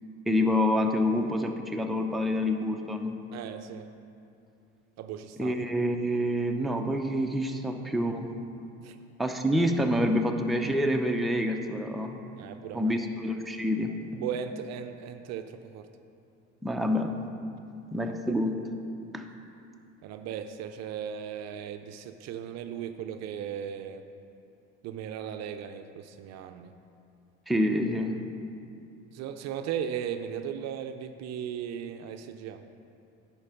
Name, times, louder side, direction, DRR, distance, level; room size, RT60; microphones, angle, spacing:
voice 1, 0.3-3.2 5.4-8.3 9.2-12.2 12.7-13.9 16.6-17.1 17.9-18.6 19.1-19.3 27.5-28.2, equal, ahead, 3 dB, 0.6 m, -27 dB
voice 2, 3.3-3.9 5.0-5.6 8.8-9.0 12.4-13.0 14.1-15.9 20.0-24.1 24.8-26.8 29.1-32.7, right 8 dB, 50° right, 8 dB, 0.5 m, -37 dB
10.5 x 4.6 x 5.6 m, 2.6 s
hypercardioid pair, 70°, 34 cm